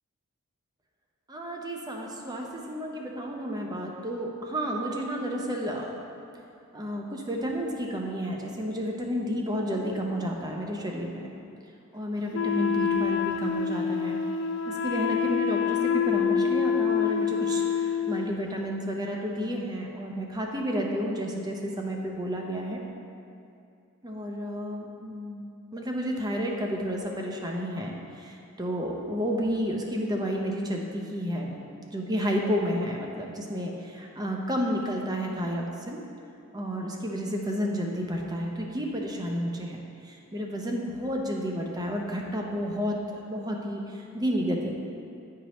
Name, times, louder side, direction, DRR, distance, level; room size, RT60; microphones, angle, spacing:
voice 1, 1.3-6.0 6.7-11.3 11.9-14.2 14.7-22.8 24.0-36.0 36.5-44.7, equal, 20° right, 0 dB, 0.6 m, -31 dB
Wind instrument woodwind instrument, 12.3-18.3, left 7 dB, 55° left, 0.4 m, -26 dB
10.0 x 4.7 x 3.0 m, 2.6 s
head